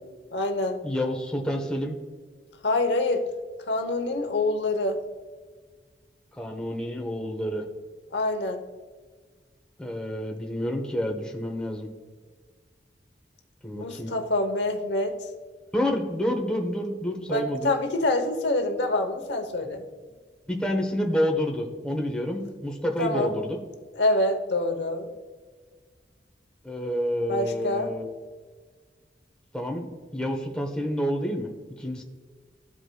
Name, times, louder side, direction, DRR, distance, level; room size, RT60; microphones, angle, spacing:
voice 1, 0.3-0.8 2.6-3.3 3.7-5.0 8.1-8.6 13.7-15.2 17.3-19.8 23.0-23.3 23.9-25.1 27.3-27.9, left 2 dB, 75° left, 5 dB, 0.9 m, -26 dB
voice 2, 0.8-2.0 6.3-7.6 9.8-11.9 13.6-14.1 15.7-17.7 20.5-23.6 26.6-28.1 29.5-31.5 31.8-32.0, equal, 5° left, 1 dB, 0.9 m, -28 dB
13.5 x 4.9 x 2.3 m, 1.5 s
head